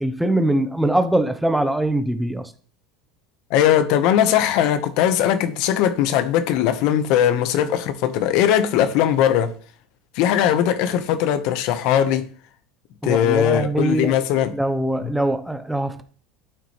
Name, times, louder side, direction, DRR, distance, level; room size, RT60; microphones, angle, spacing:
voice 1, 0.0-2.5 13.0-14.1 14.5-16.0, right 1 dB, 5° right, 0.9 m, -22 dB
voice 2, 3.5-9.5 10.1-12.3 13.0-14.5 15.0-15.1, left 10 dB, 60° left, 1.2 m, -19 dB
12.5 x 9.1 x 3.3 m
supercardioid pair, 135°, 0 cm